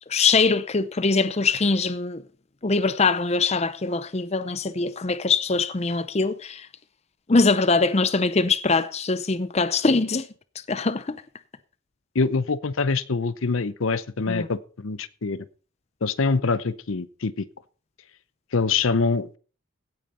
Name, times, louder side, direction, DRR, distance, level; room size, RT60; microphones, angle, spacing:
voice 1, 0.1-2.2 2.6-6.7 7.3-10.3 10.7-11.2 14.3-14.5, left 4 dB, 30° left, 0.6 m, -22 dB
voice 2, 12.1-15.4 16.0-17.5 18.5-19.4, left 4 dB, 70° left, 0.7 m, -25 dB
16.5 x 9.0 x 4.3 m
head